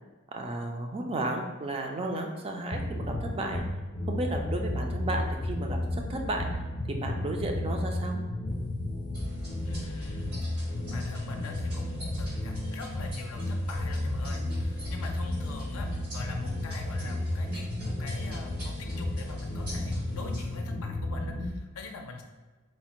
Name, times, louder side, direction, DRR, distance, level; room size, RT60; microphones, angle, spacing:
voice 1, 0.3-3.6 4.1-6.5 6.9-8.2, right 2 dB, 25° right, 2 dB, 0.3 m, -33 dB
sound 1, 2.7-21.5, left 1 dB, 30° left, 0.5 m, -33 dB
sound 2, 9.1-20.6, right 1 dB, 90° right, 1.4 m, -48 dB
voice 2, 9.6-22.2, left 3 dB, 80° left, 4 dB, 0.5 m, -44 dB
4.2 x 2.1 x 2.9 m, 1.3 s
head